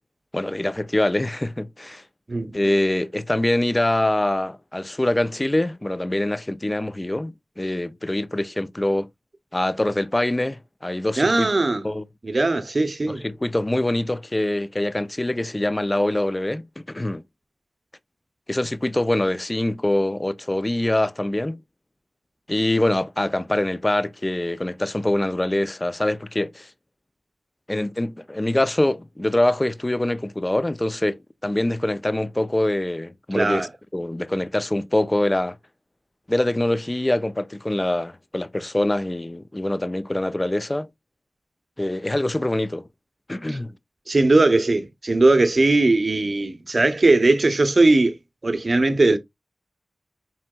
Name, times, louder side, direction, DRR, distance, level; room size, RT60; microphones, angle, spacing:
voice 1, 0.3-2.0 2.5-9.1 9.5-11.5 11.8-12.0 13.1-17.2 18.5-21.6 22.5-26.7 27.7-35.6 36.3-40.9 41.8-42.9 43.3-43.7, left 1 dB, 25° left, 0.4 m, -24 dB
voice 2, 11.2-11.9 12.2-13.2 33.3-33.7 43.5-43.6 44.1-48.2 48.4-49.2, right 2 dB, 50° right, 0.7 m, -19 dB
4.4 x 3.6 x 2.2 m
cardioid pair, 40°, 0 cm